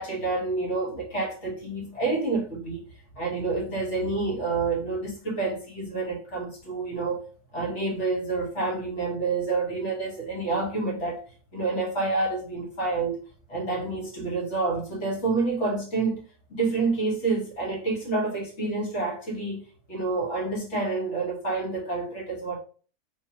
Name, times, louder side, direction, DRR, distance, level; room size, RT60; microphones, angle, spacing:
voice 1, 0.0-2.9 3.2-7.3 7.5-11.2 11.5-13.2 13.5-16.2 16.5-22.6, right 3 dB, 45° left, 1.6 m, -28 dB
3.8 x 2.9 x 2.9 m
omnidirectional pair, 1.7 m